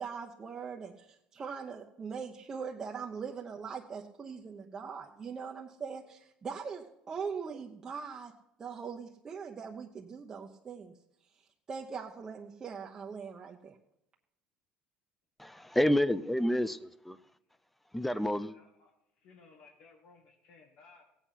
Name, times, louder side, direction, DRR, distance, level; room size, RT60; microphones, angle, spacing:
voice 1, 0.0-8.3 8.6-10.9 11.7-13.8, right 6 dB, 25° right, 1.0 m, -41 dB
voice 2, 15.4-17.2 17.9-18.5, left 1 dB, 5° left, 0.5 m, -29 dB
voice 3, 18.1-21.1, left 4 dB, 65° left, 1.9 m, -59 dB
17.0 x 8.2 x 5.9 m
cardioid pair, 125°, 2 cm